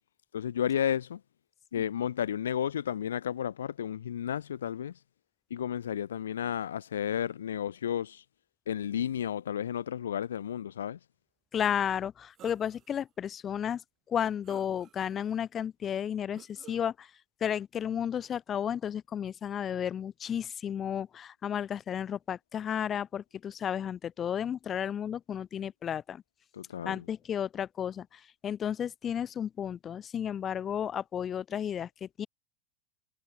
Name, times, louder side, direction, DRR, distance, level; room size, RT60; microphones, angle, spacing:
voice 1, 0.3-1.2 1.7-4.9 5.5-8.2 8.7-11.0 26.5-27.0, left 9 dB, 70° left, 0.4 m, -32 dB
voice 2, 11.5-13.8 14.1-17.1 17.4-26.2 26.8-32.3, left 9 dB, 25° left, 1.4 m, -33 dB
sound 1, 12.3-13.0 13.5-13.6 14.4-15.2 16.3-16.9, right 12 dB, 35° right, 2.4 m, -54 dB
figure-of-eight pair, 85°, 0 cm